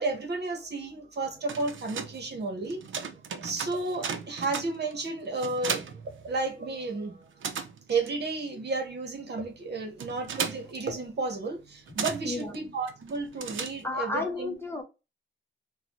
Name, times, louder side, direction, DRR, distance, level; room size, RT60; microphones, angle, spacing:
voice 1, 0.0-2.8 3.4-5.8 6.1-7.3 7.9-14.6, right 3 dB, 55° right, 1.1 m, -32 dB
sound 1, 1.2-6.8 7.1-14.2, right 6 dB, 75° right, 0.6 m, -37 dB
voice 2, 12.2-12.6 13.8-14.8, left 2 dB, 10° left, 0.7 m, -32 dB
3.9 x 2.2 x 3.0 m
wide cardioid pair, 125°, 20 cm